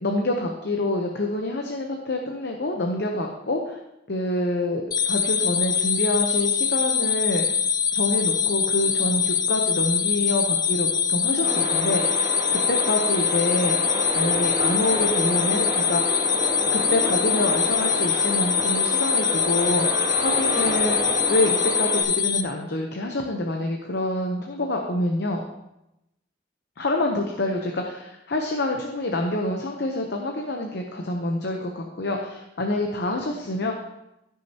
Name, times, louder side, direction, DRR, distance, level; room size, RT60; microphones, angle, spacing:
voice 1, 0.0-3.8 4.1-7.6 7.9-12.2 12.5-16.2 16.7-25.4 26.8-33.7, left 1 dB, 60° left, 2 dB, 0.8 m, -27 dB
sound 1, 4.9-22.4, left 7 dB, 20° left, 0.3 m, -23 dB
sound 2, 11.4-22.0, right 1 dB, 25° right, 1.6 m, -30 dB
15.0 x 6.4 x 2.9 m, 0.89 s
head